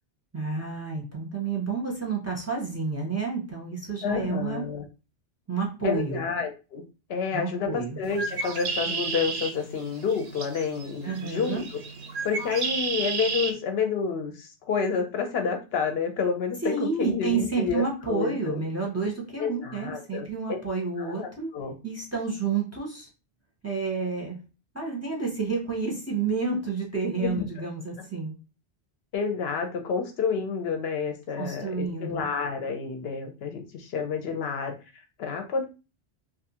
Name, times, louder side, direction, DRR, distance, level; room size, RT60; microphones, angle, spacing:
voice 1, 0.3-4.6 5.5-6.3 7.3-8.0 11.0-11.6 16.6-21.5 21.8-23.1 23.6-24.4 24.7-28.3 31.4-32.2, right 4 dB, 20° right, -2 dB, 0.6 m, -30 dB
voice 2, 4.0-4.8 5.8-6.8 7.1-11.6 12.2-18.6 19.4-20.6 21.0-21.7 27.2-27.4 29.1-34.7 35.2-35.6, left 5 dB, 70° left, 5 dB, 0.8 m, -29 dB
Bird, 8.0-13.5, right 4 dB, 70° right, 0.8 m, -32 dB
2.6 x 2.3 x 2.7 m, 0.31 s
omnidirectional pair, 1.1 m